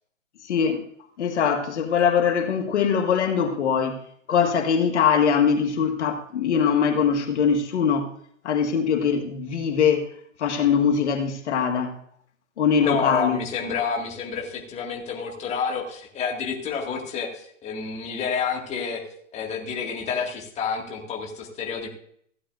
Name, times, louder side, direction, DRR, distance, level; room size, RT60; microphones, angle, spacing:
voice 1, 0.5-0.8 1.2-4.0 4.3-8.1 8.4-10.1 10.4-11.9 12.6-13.4, left 7 dB, 60° left, 1.8 m, -22 dB
voice 2, 12.8-19.0 19.3-21.9, left 6 dB, 15° left, 2.0 m, -29 dB
16.0 x 11.0 x 2.6 m
hypercardioid pair, 135°, 39 cm